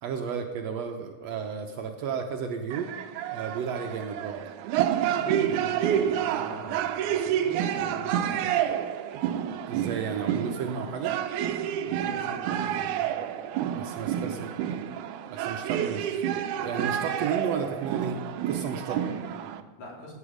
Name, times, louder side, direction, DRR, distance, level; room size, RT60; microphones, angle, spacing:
voice 1, 0.0-2.9 3.3-4.4 9.7-11.2 13.7-14.6 15.3-16.2 16.6-19.0, right 6 dB, 70° right, 5 dB, 1.7 m, -33 dB
sound 1, 2.7-19.6, right 10 dB, 90° right, 2.1 m, -29 dB
voice 2, 5.0-8.5 11.8-13.0 14.0-14.7 19.1-20.1, equal, 65° left, -2 dB, 3.9 m, -44 dB
17.0 x 8.7 x 5.0 m, 1.3 s
omnidirectional pair, 3.5 m